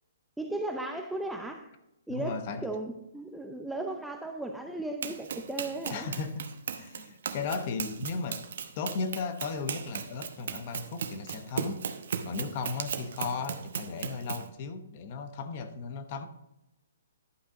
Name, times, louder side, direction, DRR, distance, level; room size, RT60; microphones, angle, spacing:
voice 1, 0.4-1.7 2.1-2.3 2.6-6.1, right 2 dB, ahead, 3 dB, 0.5 m, -36 dB
voice 2, 2.1-2.7 5.9-8.4 8.8-11.9 12.2-16.3, left 4 dB, 40° left, 9 dB, 0.9 m, -36 dB
Run, 5.0-14.5, right 7 dB, 65° right, 0.9 m, -37 dB
11.5 x 5.5 x 3.7 m, 0.87 s
hypercardioid pair, 155°, 0 cm